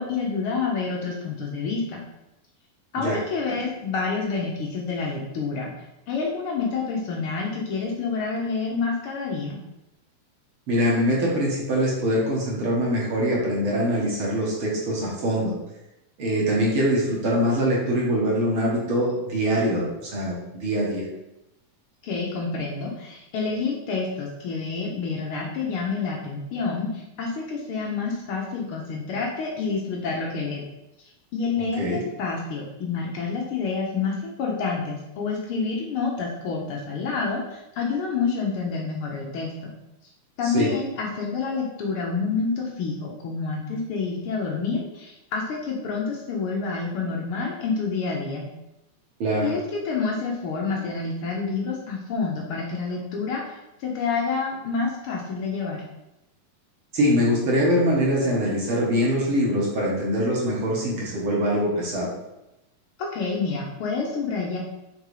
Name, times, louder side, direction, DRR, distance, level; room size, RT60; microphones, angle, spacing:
voice 1, 0.0-2.0 2.9-5.7 6.1-9.6 22.0-30.6 31.3-39.7 40.4-48.5 49.4-55.8 63.1-64.6, left 4 dB, 75° left, -1 dB, 1.3 m, -28 dB
voice 2, 10.7-15.5 16.2-21.0 31.8-32.0 40.4-40.7 49.2-49.5 56.9-62.1, equal, 55° right, -4 dB, 1.8 m, -23 dB
5.3 x 3.7 x 4.8 m, 0.92 s
omnidirectional pair, 3.5 m